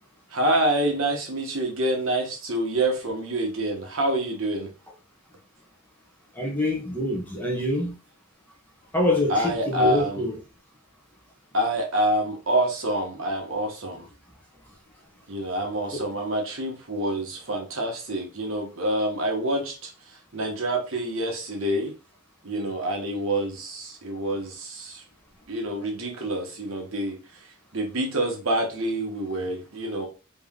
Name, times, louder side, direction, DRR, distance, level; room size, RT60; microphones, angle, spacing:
voice 1, 0.3-4.7 9.3-10.2 11.5-14.0 15.3-19.7 20.3-21.9 22.4-25.0 25.5-27.2 27.7-30.1, right 1 dB, 70° right, 1.2 m, -27 dB
voice 2, 6.4-8.0 8.9-10.4 15.9-16.1, left 1 dB, 10° left, 0.9 m, -25 dB
3.4 x 2.9 x 3.6 m
head